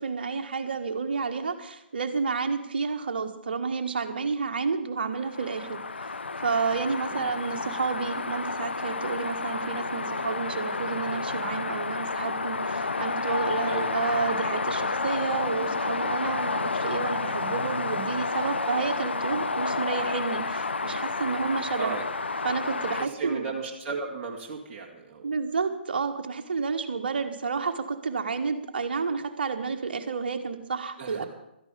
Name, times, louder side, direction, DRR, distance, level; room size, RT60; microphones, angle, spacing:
voice 1, 0.0-6.1 6.4-22.0 22.4-23.5 25.2-31.2, right 5 dB, 60° right, 6 dB, 1.6 m, -30 dB
sound 1, 5.2-23.1, left 3 dB, 75° left, 0.7 m, -30 dB
voice 2, 21.7-22.1 22.9-25.3 31.0-31.2, right 5 dB, 25° right, -1 dB, 2.1 m, -35 dB
16.5 x 13.0 x 5.1 m, 0.84 s
figure-of-eight pair, 130°, 6 cm